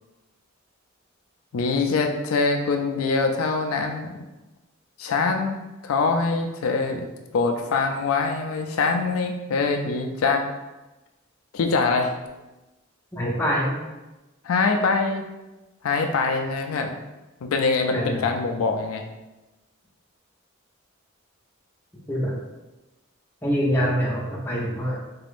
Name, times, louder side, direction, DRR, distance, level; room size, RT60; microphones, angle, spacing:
voice 1, 1.5-4.1 5.0-7.1 7.3-10.5 11.5-12.1 14.4-15.3 15.8-16.9 17.4-19.0, left 4 dB, 90° left, 4 dB, 0.4 m, -24 dB
voice 2, 13.1-13.8 17.9-18.3 22.1-22.3 23.4-25.0, equal, 10° left, -5 dB, 0.8 m, -25 dB
3.5 x 2.5 x 3.4 m, 1.1 s
head